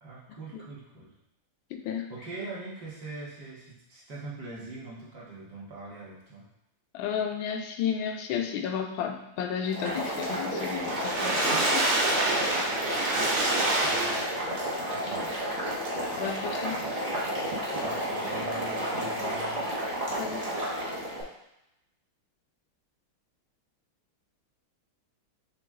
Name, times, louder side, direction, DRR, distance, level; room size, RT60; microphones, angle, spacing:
voice 1, 0.0-1.1 2.1-6.5 13.0-13.2 13.8-14.4 14.8-15.3 16.2-16.9 17.7-19.7, right 2 dB, 55° right, -6 dB, 1.7 m, -42 dB
voice 2, 1.7-2.1 6.9-11.9 16.2-16.8 20.2-20.4, left 8 dB, 75° left, 4 dB, 1.3 m, -32 dB
Boiling, 9.6-21.2, equal, 40° right, 0.5 m, -32 dB
Water / Splash splatter, 10.8-14.6 15.2-15.3 15.6-15.7, right 2 dB, 85° right, 2.3 m, -26 dB
6.0 x 2.5 x 3.5 m, 0.86 s
omnidirectional pair, 2.3 m